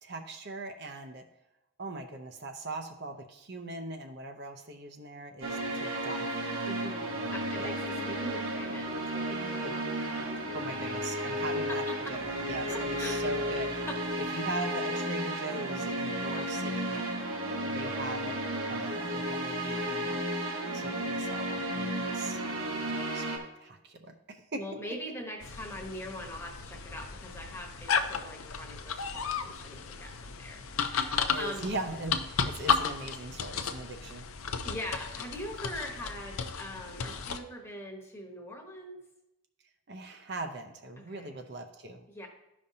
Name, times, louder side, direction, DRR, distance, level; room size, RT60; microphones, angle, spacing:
voice 1, 0.0-1.2 1.8-6.5 7.6-7.7 9.6-9.7 10.5-13.7 14.3-17.0 17.7-18.4 18.7-20.2 20.7-22.4 23.1-23.3 23.6-24.6 31.3-34.3 39.9-42.0, right 2 dB, 50° right, 4 dB, 0.7 m, -40 dB
sound 1, 5.4-23.4, right 1 dB, 75° right, 1.3 m, -33 dB
voice 2, 6.7-12.2 12.7-13.2 13.9-14.0 14.3-14.5 16.9-17.1 17.8-18.0 24.5-31.7 34.6-39.0 41.0-41.3 42.1-42.3, left 1 dB, 10° left, 0 dB, 1.1 m, -43 dB
sound 2, 25.4-37.4, left 6 dB, 90° left, 0.6 m, -34 dB
13.0 x 5.2 x 2.8 m, 0.90 s
head